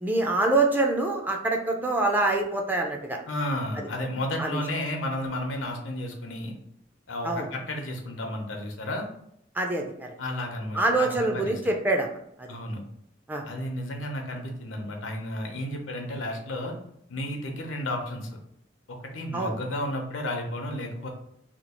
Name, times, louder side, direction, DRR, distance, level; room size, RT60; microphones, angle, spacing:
voice 1, 0.0-3.2 4.4-4.6 7.2-7.5 9.6-10.1 10.8-12.1 12.4-12.5 13.3-13.4 19.3-19.5, right 2 dB, 10° right, 1 dB, 0.4 m, -25 dB
voice 2, 3.3-6.5 7.1-9.0 10.2-11.6 12.5-12.8 13.4-16.7 17.1-18.3 18.9-21.1, left 1 dB, 85° left, 2 dB, 0.7 m, -32 dB
2.9 x 2.3 x 4.2 m, 0.74 s
head